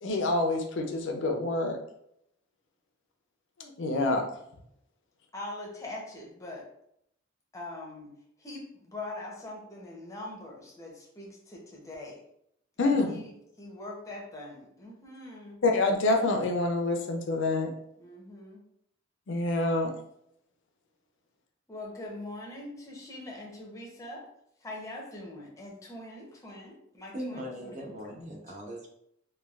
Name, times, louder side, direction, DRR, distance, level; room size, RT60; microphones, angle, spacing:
voice 1, 0.0-1.8 3.6-4.2 12.8-13.2 15.6-17.7 19.3-19.9, left 2 dB, 65° left, 3 dB, 0.5 m, -27 dB
voice 2, 5.3-6.6 7.5-8.1 8.4-12.2 12.8-13.3 13.6-15.6 18.0-18.6 21.7-24.2 24.6-27.9, left 2 dB, 15° left, -2 dB, 0.6 m, -42 dB
voice 3, 27.1-28.9, equal, 35° right, -1 dB, 0.6 m, -39 dB
3.1 x 2.3 x 2.3 m, 0.74 s
head